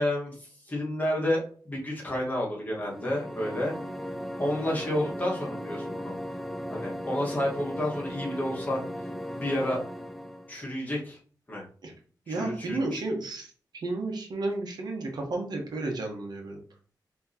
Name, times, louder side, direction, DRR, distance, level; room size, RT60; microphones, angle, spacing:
voice 1, 0.0-3.8 4.4-6.2 6.7-8.8 9.3-9.8 10.5-11.2 11.5-11.7 12.3-13.0, left 1 dB, 25° left, -3 dB, 1.5 m, -30 dB
sound 1, 2.7-10.6, equal, ahead, 0.4 m, -37 dB
voice 2, 12.3-16.6, right 2 dB, 70° right, 2 dB, 1.1 m, -32 dB
5.8 x 3.0 x 2.8 m, 0.43 s
wide cardioid pair, 125°, 7 cm